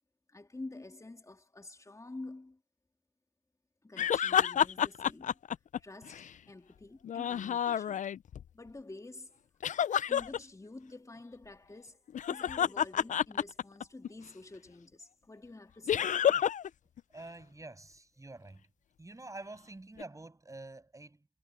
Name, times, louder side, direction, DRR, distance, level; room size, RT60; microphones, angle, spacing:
voice 1, 0.3-2.6 3.8-5.4 5.8-8.1 8.5-9.4 10.1-16.1, left 2 dB, 15° left, 3.2 m, -48 dB
sound 1, 4.0-6.3 7.0-8.4 9.6-10.4 12.1-14.1 15.9-16.7 17.0-17.1 20.0-20.1, left 9 dB, 40° left, 0.4 m, -29 dB
voice 2, 17.1-18.7 19.0-21.3, right 2 dB, 15° right, 6.9 m, -47 dB
cardioid pair, 90°, 20 cm